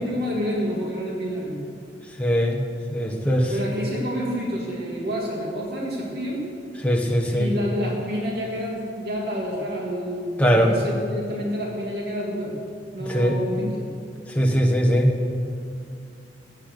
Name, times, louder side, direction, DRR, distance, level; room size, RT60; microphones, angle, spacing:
voice 1, 0.0-1.6 3.5-6.4 7.3-12.5 12.9-13.9, equal, 60° right, -2 dB, 2.7 m, -28 dB
voice 2, 2.2-2.6 2.9-3.5 6.8-7.5 10.4-10.7 13.1-13.4 14.3-15.1, equal, 10° left, 1 dB, 1.3 m, -20 dB
17.0 x 8.1 x 6.7 m, 2.5 s
head